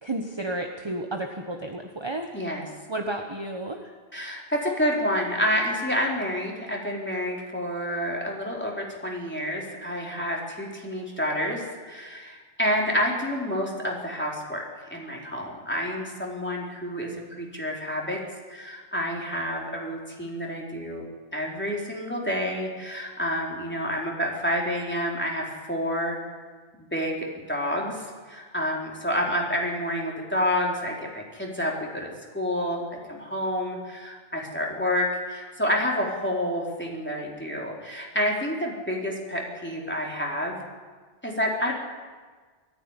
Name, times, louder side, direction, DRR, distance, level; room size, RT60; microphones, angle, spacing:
voice 1, 0.0-2.3 2.9-3.9, right 1 dB, 25° right, 3 dB, 1.3 m, -32 dB
voice 2, 4.1-14.6 14.9-18.2 18.5-21.0 21.3-26.2 26.9-32.8 33.1-40.6 41.2-41.7, equal, 10° left, -2 dB, 3.9 m, -29 dB
19.5 x 14.0 x 9.9 m, 1.5 s
omnidirectional pair, 1.1 m